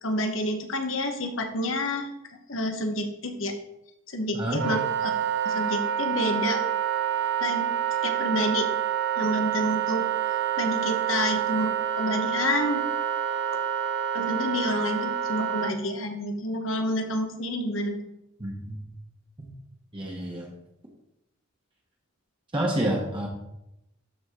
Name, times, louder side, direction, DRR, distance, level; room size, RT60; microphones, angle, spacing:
voice 1, 0.0-2.1 2.5-3.5 4.1-5.1 5.4-6.6 7.4-7.7 8.0-8.7 9.2-10.1 10.6-12.8 14.1-18.0, left 1 dB, 70° left, 5 dB, 1.2 m, -29 dB
voice 2, 4.3-4.6 18.4-18.8 19.4-19.5 19.9-20.5 22.5-23.3, right 1 dB, 25° right, -2 dB, 1.3 m, -29 dB
Wind instrument woodwind instrument, 4.5-15.7, right 9 dB, 55° right, 0.5 m, -27 dB
12.5 x 4.9 x 3.7 m, 0.86 s
head